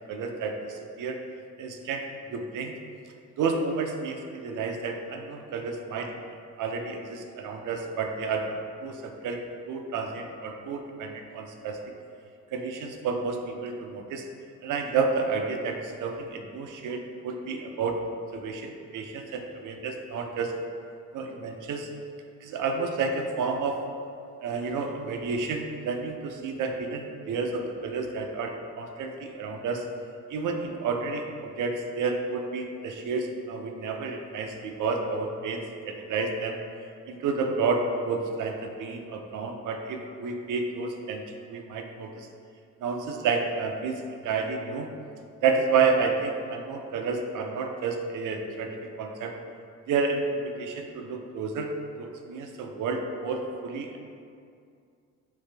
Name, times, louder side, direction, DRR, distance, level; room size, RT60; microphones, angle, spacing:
voice 1, 0.1-1.2 1.6-2.7 3.4-6.1 6.6-8.6 8.8-9.4 9.7-11.8 12.5-14.2 14.6-18.0 18.3-20.5 21.1-21.9 22.4-23.8 24.4-29.8 30.3-36.6 37.1-42.3 42.8-44.9 45.4-49.3 49.9-51.7 52.0-54.0, right 4 dB, 55° right, 3 dB, 0.6 m, -30 dB
3.3 x 3.1 x 3.3 m, 2.3 s
supercardioid pair, 60°, 36 cm